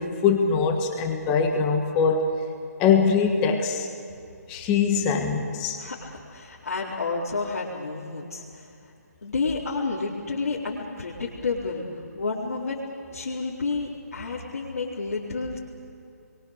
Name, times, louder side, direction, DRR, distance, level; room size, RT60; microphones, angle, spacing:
voice 1, 0.0-2.3 2.8-3.9 4.5-5.8, left 6 dB, 10° left, 4 dB, 1.4 m, -22 dB
voice 2, 5.8-8.7 9.2-11.9 12.1-12.8 13.1-15.6, left 4 dB, 60° left, -7 dB, 4.1 m, -30 dB
28.5 x 23.0 x 6.7 m, 2.6 s
hypercardioid pair, 175°, 9 cm